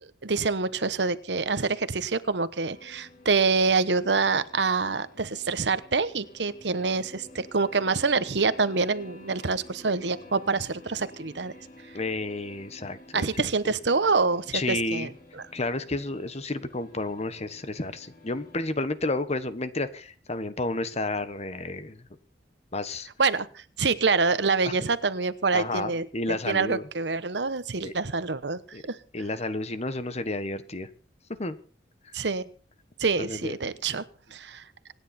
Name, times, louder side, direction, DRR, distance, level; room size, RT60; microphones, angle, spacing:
voice 1, 0.2-11.5 13.1-15.1 23.2-29.0 32.1-32.4 33.0-34.0 34.3-34.6, right 4 dB, 75° right, 14 dB, 1.1 m, -26 dB
sound 1, 2.6-18.7, left 2 dB, 55° left, 4.2 m, -51 dB
voice 2, 11.9-13.7 14.5-15.1 15.5-22.0 22.7-23.1 24.6-24.8 25.5-26.9 27.8-27.9 28.7-28.8 29.1-30.9 31.4-31.6 33.2-33.5 33.9-34.0, left 2 dB, 40° left, 12 dB, 1.3 m, -31 dB
25.5 x 10.0 x 4.3 m, 0.40 s
head